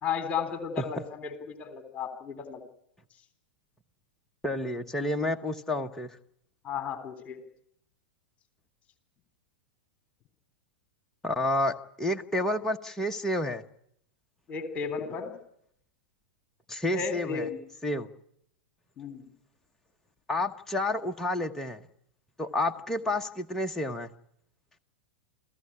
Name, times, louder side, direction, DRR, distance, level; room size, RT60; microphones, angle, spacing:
voice 1, 0.0-2.6 6.6-7.4 14.5-15.3 16.9-17.6 19.0-19.2, left 6 dB, 25° left, 8 dB, 3.3 m, -34 dB
voice 2, 4.4-6.2 11.2-13.6 16.7-17.5 17.8-18.1 20.3-21.8 22.4-24.1, left 1 dB, 5° left, 3 dB, 1.2 m, -30 dB
29.0 x 16.0 x 9.8 m, 0.74 s
figure-of-eight pair, 95°, 6 cm